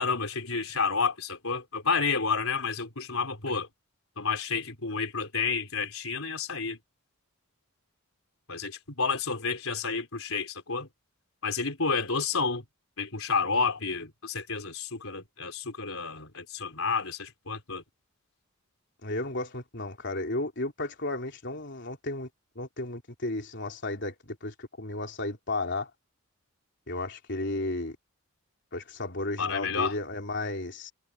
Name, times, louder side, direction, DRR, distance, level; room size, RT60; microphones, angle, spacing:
voice 1, 0.0-3.7 4.2-6.8 8.5-10.9 11.4-12.6 13.0-17.8 29.4-30.0, left 5 dB, 70° left, 4.2 m, -30 dB
voice 2, 19.0-22.3 22.6-24.1 24.4-25.9 26.9-28.0 28.7-30.9, left 2 dB, 50° left, 3.6 m, -33 dB
head